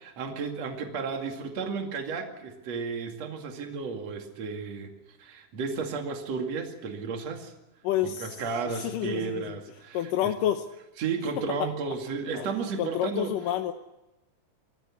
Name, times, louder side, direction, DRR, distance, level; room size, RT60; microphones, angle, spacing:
voice 1, 0.0-4.9 5.2-7.5 8.0-10.1 11.0-13.3, right 5 dB, 55° right, 4 dB, 3.3 m, -33 dB
voice 2, 7.8-9.6 9.9-10.6 11.6-11.7 12.3-12.5 12.8-13.7, left 11 dB, 80° left, 5 dB, 2.6 m, -29 dB
25.5 x 15.0 x 9.7 m, 0.98 s
omnidirectional pair, 3.8 m